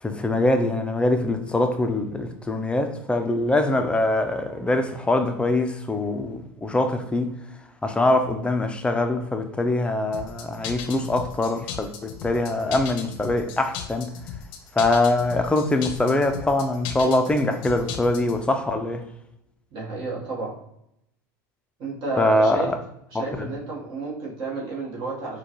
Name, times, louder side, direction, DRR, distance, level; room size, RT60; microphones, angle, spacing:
voice 1, 0.0-7.3 7.8-14.1 14.7-19.1 22.2-22.8 23.1-23.5, left 2 dB, 10° left, 0.4 m, -23 dB
sound 1, 10.1-18.4, left 8 dB, 60° left, 0.6 m, -36 dB
voice 2, 19.7-20.6 21.8-22.7 23.2-25.4, right 3 dB, 50° right, 1.1 m, -31 dB
4.3 x 2.3 x 2.9 m
hypercardioid pair, 95°, 10 cm